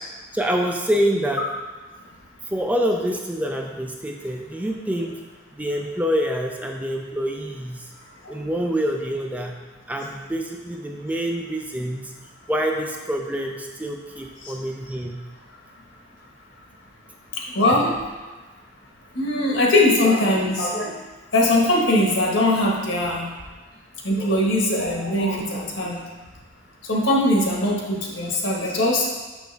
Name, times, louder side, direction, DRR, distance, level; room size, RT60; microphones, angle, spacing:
voice 1, 0.3-1.4 2.5-5.2 5.5-7.8 8.3-9.6 9.9-12.1 12.5-15.2 17.7-17.8, equal, 10° right, 1 dB, 0.4 m, -26 dB
voice 2, 17.5-18.0 19.1-21.0 21.3-23.3 24.0-26.0 26.9-29.0, left 1 dB, 70° left, -2 dB, 1.5 m, -21 dB
6.5 x 6.3 x 3.4 m, 1.3 s
head